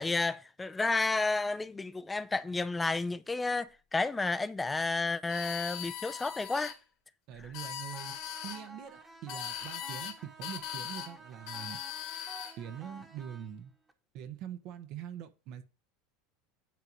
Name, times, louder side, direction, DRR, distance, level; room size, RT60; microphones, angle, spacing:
voice 1, 0.0-6.7, left 3 dB, 15° left, 0.5 m, -31 dB
sound 1, 5.3-6.8 7.4-8.6 9.3-10.2 10.4-11.1 11.5-12.6, left 9 dB, 60° left, 1.6 m, -40 dB
voice 2, 7.3-8.1 8.4-11.8 12.6-13.7 14.1-15.6, right 9 dB, 55° right, 1.1 m, -43 dB
sound 2, 7.9-13.9, right 2 dB, 15° right, 1.3 m, -52 dB
9.0 x 3.9 x 6.1 m
hypercardioid pair, 85°, 0 cm